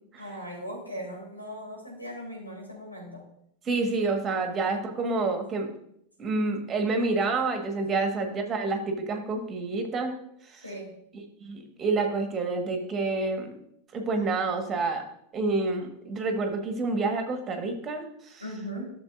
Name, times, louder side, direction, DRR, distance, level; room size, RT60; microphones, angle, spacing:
voice 1, 0.2-3.2 4.1-4.5 5.3-5.6 7.1-7.3 10.6-10.9 18.4-18.9, equal, 85° left, -2 dB, 3.4 m, -39 dB
voice 2, 3.6-5.7 6.2-10.1 10.5-10.6 11.1-13.5 13.9-15.0 15.3-18.4, right 3 dB, 25° right, 4 dB, 1.6 m, -28 dB
13.0 x 6.8 x 2.6 m, 0.73 s
figure-of-eight pair, 90°, 0 cm